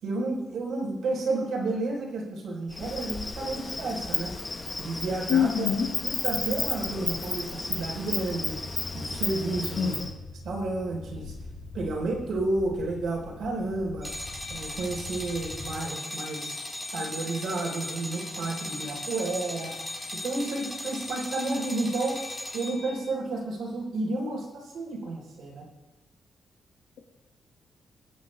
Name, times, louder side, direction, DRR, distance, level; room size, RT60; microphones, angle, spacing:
voice 1, 0.0-4.4 4.8-5.7 6.0-8.6 8.9-10.1 10.4-11.3 11.7-14.1 14.5-16.6 16.9-19.7 20.1-22.2 22.5-25.7, right 2 dB, 75° right, -2 dB, 3.5 m, -31 dB
Insect, 2.7-10.1, left 3 dB, 20° left, 1.0 m, -33 dB
voice 2, 5.3-5.9 9.7-10.0, left 8 dB, 80° left, 0 dB, 1.4 m, -25 dB
sound 1, 6.3-15.8, left 3 dB, 65° left, 2.3 m, -43 dB
sound 2, 14.0-23.1, left 1 dB, ahead, 2.0 m, -37 dB
21.0 x 9.2 x 3.2 m, 1.1 s
wide cardioid pair, 170°, 0 cm